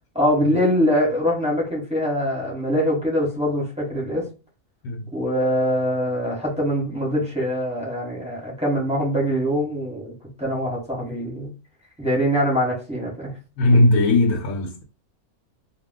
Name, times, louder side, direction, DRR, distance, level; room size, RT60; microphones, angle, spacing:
voice 1, 0.1-4.3 5.1-11.5 12.0-13.3, equal, 5° right, 1.1 m, -23 dB
voice 2, 13.6-14.8, left 2 dB, 75° left, 1.0 m, -18 dB
2.3 x 2.3 x 3.6 m
omnidirectional pair, 1.5 m